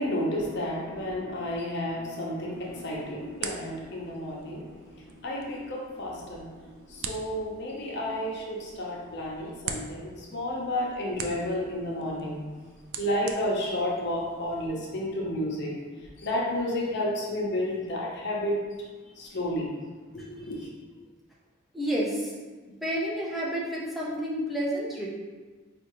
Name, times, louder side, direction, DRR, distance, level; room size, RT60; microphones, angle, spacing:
voice 1, 0.0-4.6 4.9-12.4 13.0-15.7 16.2-18.5 19.2-19.7 20.1-20.6, left 1 dB, 55° left, -3 dB, 0.6 m, -31 dB
sound 1, 2.5-14.7, right 6 dB, 80° right, 0.4 m, -44 dB
voice 2, 21.7-22.3 22.8-25.1, equal, ahead, -5 dB, 0.6 m, -30 dB
4.5 x 2.4 x 2.9 m, 1.3 s
head